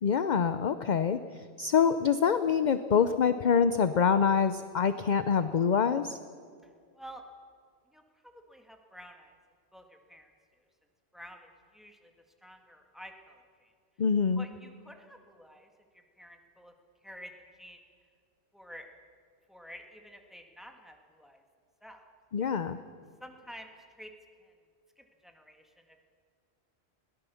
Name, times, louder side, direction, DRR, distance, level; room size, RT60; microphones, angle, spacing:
voice 1, 0.0-6.2 14.0-14.5 22.3-22.8, left 6 dB, 50° left, 11 dB, 0.7 m, -26 dB
voice 2, 7.9-9.4 9.7-10.6 11.1-12.1 12.4-13.7 14.4-16.7 17.0-17.8 18.5-18.9 19.5-21.4 21.8-22.1 23.2-24.1 24.4-24.5 25.0-26.1, equal, ahead, 4 dB, 1.8 m, -50 dB
21.5 x 17.5 x 7.0 m, 2.1 s
omnidirectional pair, 1.1 m